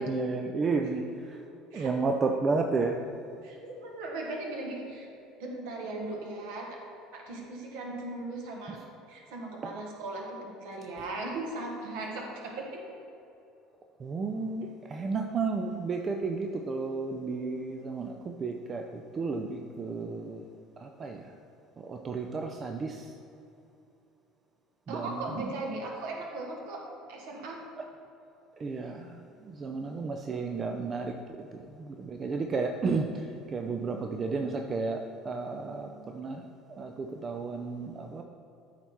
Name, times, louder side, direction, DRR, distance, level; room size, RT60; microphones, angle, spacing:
voice 1, 0.0-1.4 1.7-3.0 9.6-9.7 14.0-20.4 20.8-21.3 21.8-23.1 24.9-25.2 28.6-31.1 31.4-36.4 36.7-38.2, right 4 dB, 30° right, 3 dB, 0.5 m, -32 dB
voice 2, 3.4-5.1 5.4-6.8 7.1-8.8 9.1-12.8 24.9-26.8 27.1-27.6, right 2 dB, 60° right, 0 dB, 1.5 m, -38 dB
13.0 x 4.5 x 4.3 m, 2.7 s
figure-of-eight pair, 60°, 0 cm